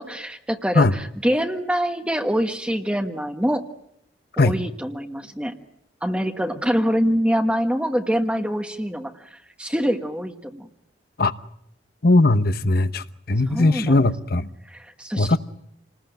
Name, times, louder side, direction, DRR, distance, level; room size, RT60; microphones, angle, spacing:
voice 1, 0.0-3.6 4.4-5.5 6.0-10.7 13.5-14.0 14.6-15.4, equal, 5° right, 1.3 m, -25 dB
voice 2, 12.0-14.5 15.2-15.4, left 2 dB, 55° left, 1.0 m, -19 dB
28.0 x 20.0 x 9.1 m
head